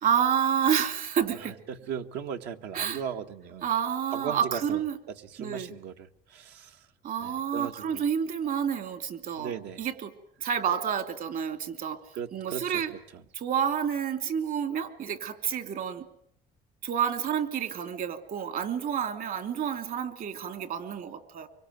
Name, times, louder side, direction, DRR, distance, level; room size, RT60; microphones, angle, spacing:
voice 1, 0.0-1.5 2.7-3.0 3.6-5.0 5.4-5.7 7.0-9.5 9.8-10.1 10.4-12.0 12.3-12.9 13.3-16.1 16.8-21.5, right 8 dB, 60° right, 10 dB, 3.1 m, -29 dB
voice 2, 1.7-3.7 4.1-4.8 5.1-6.8 7.2-8.0 9.4-9.8 12.1-12.8, right 8 dB, 90° right, 6 dB, 2.0 m, -37 dB
24.5 x 24.0 x 9.4 m, 0.67 s
cardioid pair, 110°, 17 cm